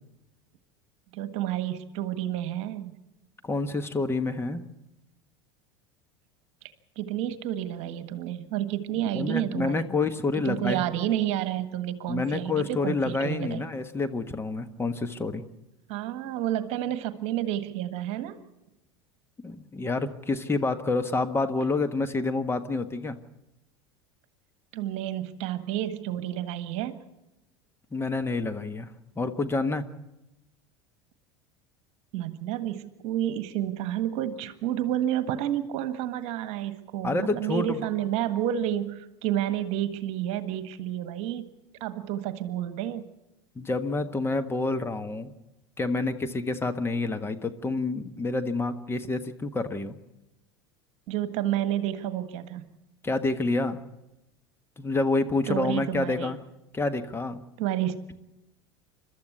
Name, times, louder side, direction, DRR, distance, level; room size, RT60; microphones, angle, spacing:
voice 1, 1.1-3.0 6.9-9.9 10.4-13.6 15.9-18.4 24.7-27.0 32.1-41.4 41.8-43.0 51.1-52.7 55.5-56.3 57.6-58.1, right 12 dB, 50° right, 11 dB, 1.6 m, -30 dB
voice 2, 3.4-4.7 9.1-10.8 12.1-15.4 19.4-23.2 27.9-28.9 29.2-29.8 37.0-37.9 43.5-45.3 45.8-49.9 53.0-53.8 54.8-56.4 56.7-57.4, left 3 dB, 15° left, 8 dB, 1.4 m, -28 dB
29.0 x 13.0 x 8.2 m, 0.95 s
figure-of-eight pair, 75°, 14 cm